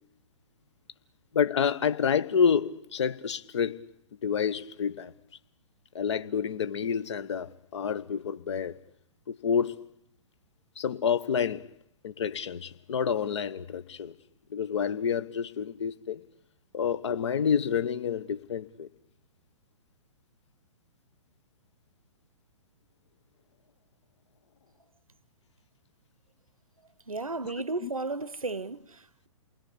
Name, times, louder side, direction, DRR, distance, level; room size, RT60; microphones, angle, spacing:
voice 1, 1.3-3.8 4.2-5.1 5.9-8.8 9.3-9.8 10.8-11.7 12.0-14.1 14.5-16.2 16.7-18.9 27.8-27.9, left 7 dB, 55° left, 1.1 m, -28 dB
voice 2, 27.1-29.3, right 3 dB, 85° right, 0.9 m, -34 dB
29.0 x 20.5 x 8.3 m
figure-of-eight pair, 120°, 17 cm